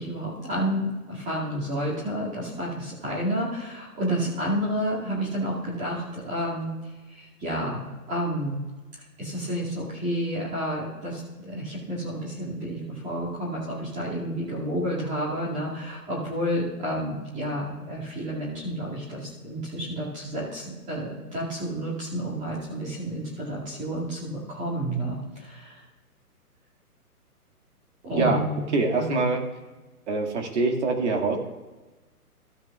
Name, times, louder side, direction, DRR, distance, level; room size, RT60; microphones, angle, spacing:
voice 1, 0.0-6.7 7.1-8.6 9.2-25.8 28.0-28.6 28.9-29.2, equal, 15° right, -7 dB, 2.3 m, -30 dB
voice 2, 28.7-29.4 30.1-31.4, right 3 dB, 50° right, 2 dB, 2.1 m, -24 dB
15.0 x 9.1 x 2.4 m, 1.2 s
figure-of-eight pair, 130°, 46 cm